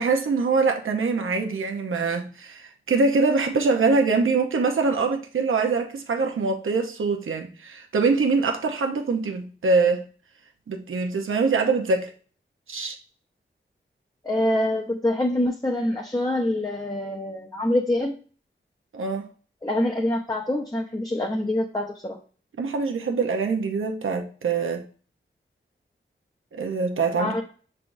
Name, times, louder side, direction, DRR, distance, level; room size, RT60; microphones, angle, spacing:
voice 1, 0.0-10.0 10.7-12.1 12.7-13.0 18.9-19.2 22.6-24.8 26.5-27.3, right 4 dB, 85° right, 0.8 m, -24 dB
voice 2, 14.2-18.1 19.6-22.2 27.2-27.4, left 1 dB, 20° left, 0.7 m, -25 dB
5.9 x 3.4 x 2.6 m
cardioid pair, 55°, 20 cm